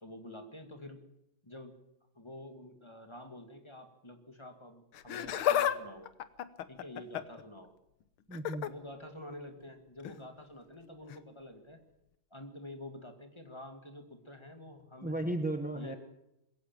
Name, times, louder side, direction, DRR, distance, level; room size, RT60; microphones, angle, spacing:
voice 1, 0.0-1.0 1.4-1.8 2.1-6.1 6.7-7.7 8.6-11.8 12.3-15.2 15.7-16.0, left 1 dB, 15° left, 6 dB, 2.2 m, -48 dB
Laughter, 4.9-5.8 6.1-7.4 8.3-8.7 10.0-10.2 11.1-11.2, left 10 dB, 80° left, 1.8 m, -31 dB
voice 2, 8.3-8.7 15.0-16.0, right 1 dB, 5° right, 7 dB, 0.7 m, -34 dB
21.0 x 17.0 x 7.6 m, 0.84 s
omnidirectional pair, 2.3 m